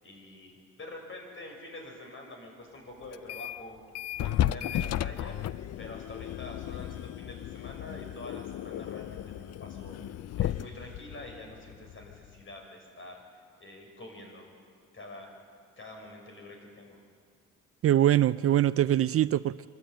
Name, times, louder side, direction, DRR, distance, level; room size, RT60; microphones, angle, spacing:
voice 1, 0.0-3.8 4.2-5.4 5.8-13.2 13.6-14.5 14.9-15.3 15.8-17.0, left 2 dB, 40° left, 2 dB, 6.1 m, -46 dB
sound 1, 3.1-3.6 3.9-12.4, left 12 dB, 55° left, 0.5 m, -34 dB
voice 2, 17.8-19.7, right 12 dB, 50° right, 17 dB, 0.4 m, -23 dB
25.0 x 14.0 x 9.2 m, 2.2 s
cardioid pair, 90°, 30 cm